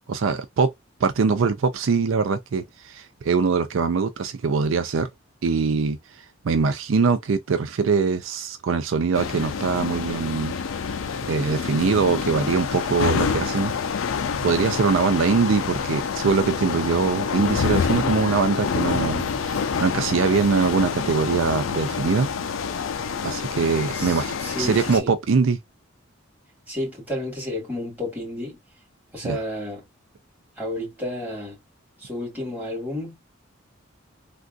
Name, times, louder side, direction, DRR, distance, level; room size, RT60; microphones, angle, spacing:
voice 1, 0.1-0.7 1.0-5.1 5.4-6.0 6.4-10.5 11.3-13.7 14.4-22.3 23.2-25.6 29.2-29.4, right 5 dB, 75° right, 0.4 m, -22 dB
sound 1, 9.1-25.0, left 6 dB, 85° left, 0.5 m, -27 dB
voice 2, 23.9-25.1 26.7-28.6 29.1-29.8 30.6-31.6 32.0-33.2, left 1 dB, 10° right, 2.1 m, -31 dB
3.4 x 2.5 x 2.4 m
head